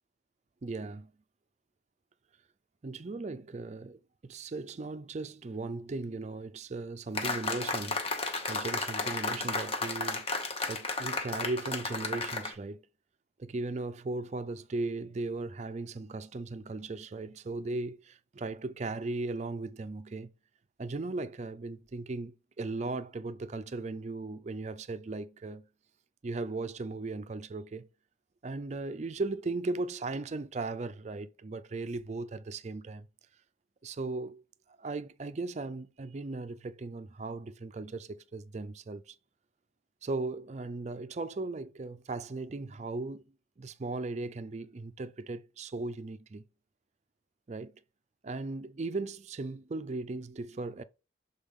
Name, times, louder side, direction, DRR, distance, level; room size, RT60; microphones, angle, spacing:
voice 1, 0.6-1.1 2.8-8.0 8.4-10.4 10.7-12.8 13.4-20.3 20.8-25.7 26.2-27.9 28.4-33.1 33.8-34.4 34.8-39.2 40.0-43.2 43.6-46.4 47.5-47.7 48.2-50.8, right 3 dB, 35° right, 0.4 m, -37 dB
sound 1, 7.1-12.5, left 3 dB, 30° left, 0.9 m, -33 dB
7.1 x 3.9 x 3.6 m
head